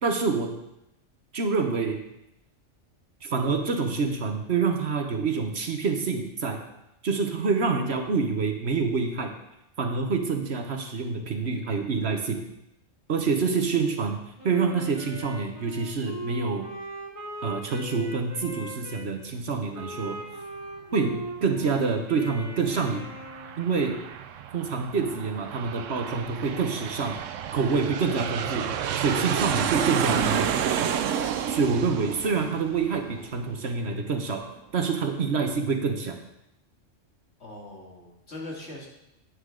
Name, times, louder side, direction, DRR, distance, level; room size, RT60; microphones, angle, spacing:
voice 1, 0.0-0.6 1.3-2.0 3.2-6.6 7.0-9.3 9.8-12.5 13.1-16.7 17.4-20.2 20.9-23.1 23.6-24.0 24.5-27.2 27.5-28.7 29.0-30.9 31.5-34.4 34.7-36.2, right 4 dB, 60° right, 5 dB, 1.2 m, -27 dB
Wind instrument woodwind instrument, 14.4-19.1 19.7-23.7, right 1 dB, 25° right, 2.5 m, -39 dB
Aircraft, 22.6-33.8, right 8 dB, 85° right, 1.0 m, -30 dB
voice 2, 37.4-38.9, left 2 dB, 60° left, -3 dB, 2.5 m, -40 dB
9.7 x 9.6 x 3.8 m, 0.85 s
omnidirectional pair, 1.3 m